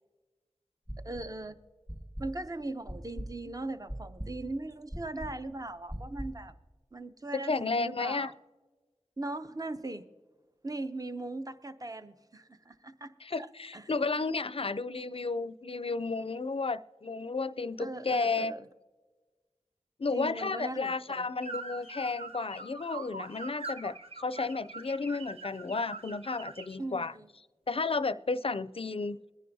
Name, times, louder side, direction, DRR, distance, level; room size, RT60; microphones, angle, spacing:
sound 1, 0.9-1.5 1.9-6.5, equal, 15° right, 1.5 m, -41 dB
voice 1, 1.0-1.5 2.2-6.5 6.9-8.3 9.2-10.0 10.6-13.1 13.7-13.8 17.8-18.6 20.1-21.3 26.8-27.3, right 2 dB, 30° right, 9 dB, 0.7 m, -39 dB
voice 2, 7.5-8.3 13.2-18.5 20.0-27.1 27.7-29.2, left 4 dB, 55° left, 14 dB, 0.4 m, -32 dB
sound 2, 21.4-26.8, right 3 dB, 60° right, 0.9 m, -43 dB
22.0 x 10.0 x 2.7 m, 1.3 s
wide cardioid pair, 45°, 12 cm